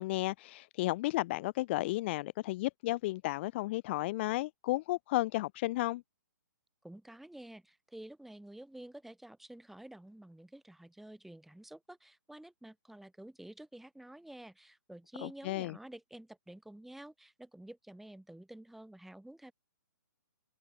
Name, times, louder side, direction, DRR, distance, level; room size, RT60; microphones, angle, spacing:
voice 1, 0.0-6.0 15.2-15.7, left 19 dB, 35° left, 0.7 m, -33 dB
voice 2, 6.8-19.5, right 1 dB, ahead, 6.9 m, -50 dB
open air
figure-of-eight pair, 125°, 10 cm